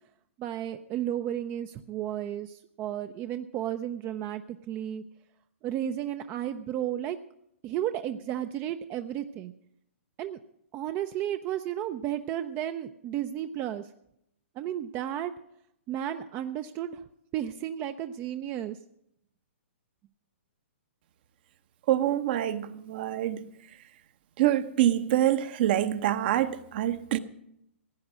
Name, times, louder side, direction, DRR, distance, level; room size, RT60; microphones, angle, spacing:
voice 1, 0.4-5.0 5.6-7.2 7.6-9.5 10.2-10.4 10.7-13.9 14.6-15.3 15.9-17.0 17.3-18.8, right 11 dB, 25° right, 0.5 m, -33 dB
voice 2, 21.9-23.4 24.4-27.2, right 12 dB, 50° right, 0.9 m, -26 dB
16.0 x 9.5 x 6.2 m
hypercardioid pair, 130°, 7 cm